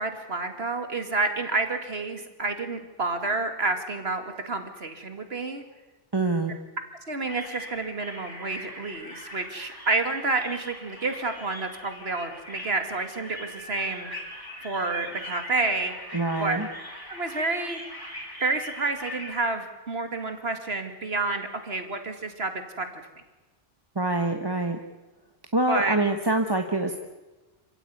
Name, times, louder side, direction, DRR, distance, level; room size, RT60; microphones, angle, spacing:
voice 1, 0.0-5.6 7.1-14.1 14.6-15.9 16.4-16.6 17.1-17.8 18.4-22.9 25.7-26.0, right 3 dB, 60° right, 7 dB, 2.6 m, -29 dB
voice 2, 6.1-6.5 16.1-16.7 23.9-24.8 25.5-27.0, right 2 dB, 20° right, 5 dB, 1.2 m, -25 dB
sound 1, 7.3-19.4, equal, 30° left, 5.4 m, -41 dB
27.0 x 16.0 x 9.6 m, 1.2 s
omnidirectional pair, 1.2 m